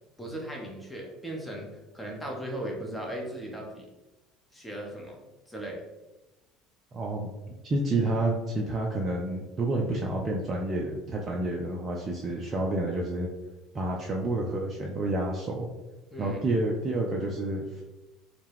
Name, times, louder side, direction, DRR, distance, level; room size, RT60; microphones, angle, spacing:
voice 1, 0.2-1.7 1.9-3.9 4.5-5.2 5.5-5.8 16.1-16.4, right 1 dB, 10° left, 0 dB, 0.6 m, -37 dB
voice 2, 6.9-7.3 7.6-13.3 13.7-15.7 16.2-17.8, right 2 dB, 30° right, -2 dB, 0.3 m, -29 dB
2.1 x 2.1 x 3.3 m, 1.1 s
figure-of-eight pair, 65°, 0 cm